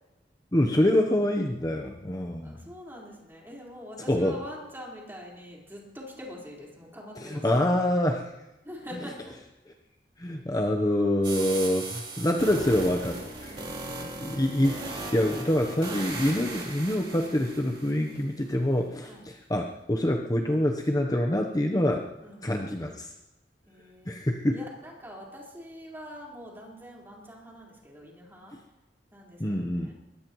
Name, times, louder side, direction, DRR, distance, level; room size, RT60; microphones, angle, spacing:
voice 1, 0.5-2.6 4.1-4.4 7.2-8.3 10.2-13.6 14.0-22.0 22.4-23.1 24.1-24.6 29.4-29.9, left 1 dB, 20° left, 2 dB, 0.9 m, -26 dB
voice 2, 2.4-7.7 8.6-9.4 13.5-14.4 19.1-19.3 22.2-23.1 23.7-24.1 24.5-28.6 29.1-29.9, equal, 15° right, -3 dB, 4.4 m, -45 dB
sound 1, 11.2-18.2, right 2 dB, 30° right, 3.3 m, -38 dB
22.0 x 19.5 x 3.1 m, 1.0 s
head